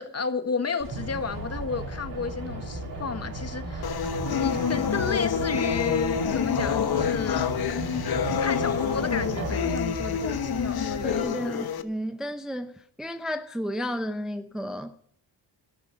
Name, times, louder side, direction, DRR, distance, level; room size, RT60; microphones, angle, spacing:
voice 1, 0.0-4.0 4.3-7.5 8.4-11.6, left 5 dB, 35° left, 1.6 m, -32 dB
sound 1, 0.8-11.2, right 2 dB, 50° right, 7.3 m, -35 dB
sound 2, 3.8-11.8, left 7 dB, 60° left, 1.2 m, -27 dB
voice 2, 11.0-14.9, equal, ahead, 0.7 m, -32 dB
13.0 x 13.0 x 6.7 m
wide cardioid pair, 140°, 42 cm